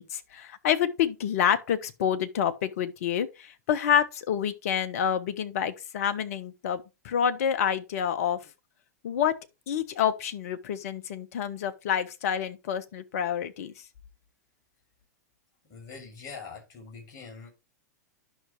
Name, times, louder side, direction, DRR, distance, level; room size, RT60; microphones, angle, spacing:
voice 1, 0.0-8.4 9.0-9.3 9.7-13.7, left 9 dB, 55° left, 1.2 m, -28 dB
voice 2, 15.7-17.5, left 5 dB, 40° left, 6.0 m, -43 dB
11.0 x 6.1 x 3.2 m
figure-of-eight pair, 100°, 9 cm